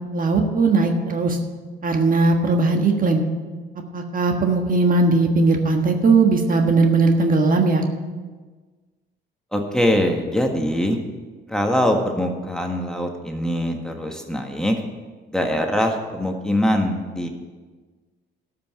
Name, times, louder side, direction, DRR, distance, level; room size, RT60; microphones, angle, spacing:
voice 1, 0.0-1.4 1.8-3.2 3.9-7.9, right 3 dB, 45° right, 3 dB, 1.5 m, -18 dB
voice 2, 9.5-11.0 11.5-14.7 15.3-17.3, equal, 5° left, 2 dB, 1.6 m, -22 dB
12.5 x 5.9 x 8.0 m, 1.4 s
cardioid pair, 90°, 20 cm